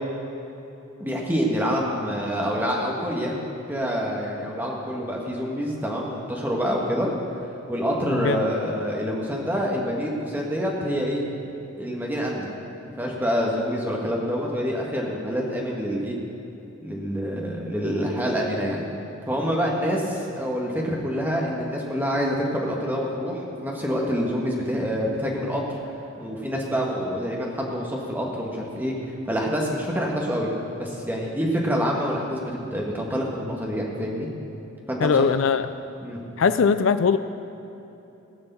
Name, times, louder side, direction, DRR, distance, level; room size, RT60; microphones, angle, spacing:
voice 1, 1.0-3.4 3.7-7.1 7.7-11.2 11.8-12.5 13.0-16.2 16.8-18.8 19.3-25.6 26.2-28.9 29.2-30.5 30.8-34.3 34.9-35.2 36.0-36.2, equal, 10° right, -2 dB, 1.7 m, -26 dB
voice 2, 8.0-8.4 35.0-35.7 36.4-37.2, left 5 dB, 65° left, 12 dB, 0.4 m, -20 dB
17.0 x 7.0 x 6.9 m, 3.0 s
head